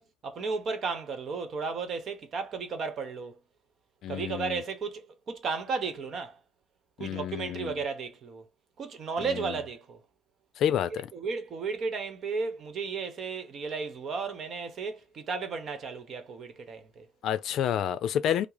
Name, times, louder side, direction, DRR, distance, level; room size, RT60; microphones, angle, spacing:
voice 1, 0.0-3.4 4.1-6.4 7.0-8.5 8.8-10.0 11.1-17.1, right 5 dB, 40° right, 1.0 m, -34 dB
voice 2, 4.0-4.6 7.0-7.8 9.2-9.6 10.6-11.1 17.2-18.5, left 9 dB, 55° left, 0.5 m, -29 dB
5.8 x 2.0 x 4.0 m
cardioid pair, 155°, 0 cm